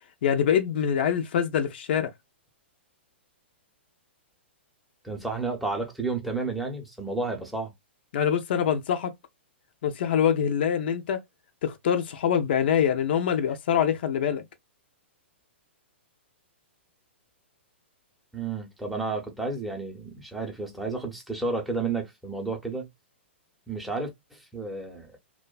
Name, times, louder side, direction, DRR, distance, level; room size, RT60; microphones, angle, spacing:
voice 1, 0.2-2.1 8.1-9.1 9.8-11.2 11.6-14.4, left 8 dB, 60° left, 0.5 m, -24 dB
voice 2, 5.0-7.7 18.3-22.9 23.7-25.1, right 3 dB, ahead, 0.7 m, -31 dB
2.5 x 2.2 x 2.3 m
hypercardioid pair, 115°, 6 cm